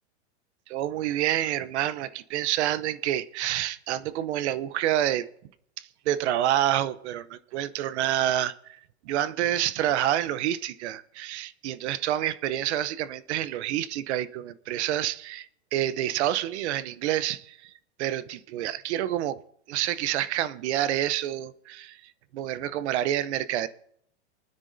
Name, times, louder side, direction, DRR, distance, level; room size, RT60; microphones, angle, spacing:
voice 1, 0.7-5.3 5.8-17.7 18.0-19.4 19.7-23.7, right 12 dB, 65° right, 16 dB, 0.8 m, -28 dB
29.0 x 9.8 x 2.6 m, 0.70 s
supercardioid pair, 145°, 36 cm